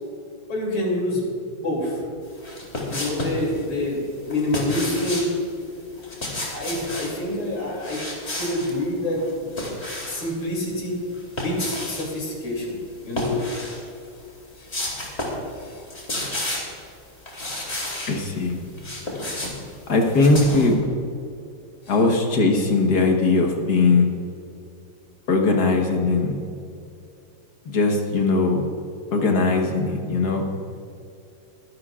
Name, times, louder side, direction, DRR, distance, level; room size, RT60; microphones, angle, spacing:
voice 1, 0.5-1.3 1.6-2.0 2.9-5.3 6.5-8.0 8.4-9.5 10.1-11.0 11.4-12.8 13.0-13.4 14.6-14.7 15.5-15.8 21.9-22.0, left 1 dB, 90° left, -2 dB, 3.8 m, -27 dB
sound 1, 2.4-3.4 4.3-5.3 6.0-7.1 7.8-8.7 9.2-10.3 11.1-12.1 13.1-13.8 14.2-14.3 14.7-15.5 15.7-16.8 17.3-18.2 18.6-20.7, left 1 dB, 30° left, 2.9 m, -31 dB
voice 2, 18.1-18.6 19.9-20.8 21.9-24.1 25.3-26.4 27.7-28.6 29.1-30.4, left 3 dB, 50° left, 2 dB, 1.7 m, -20 dB
23.0 x 11.5 x 2.5 m, 2.6 s
omnidirectional pair, 2.3 m